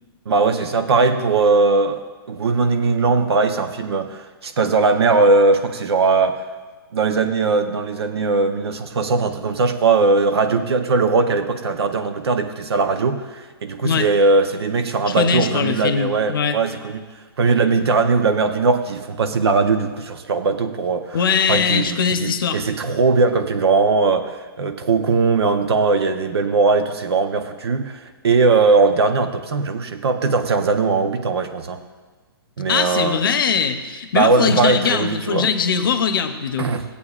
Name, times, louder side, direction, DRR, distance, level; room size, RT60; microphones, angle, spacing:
voice 1, 0.3-6.4 6.9-17.0 17.4-21.2 21.5-31.8 32.6-33.2 34.1-35.5 36.6-36.8, right 4 dB, 90° right, 7 dB, 0.8 m, -19 dB
voice 2, 15.1-16.6 21.1-22.6 32.7-36.7, left 6 dB, 60° left, 9 dB, 0.7 m, -21 dB
14.5 x 8.4 x 2.4 m, 1.4 s
hypercardioid pair, 170°, 13 cm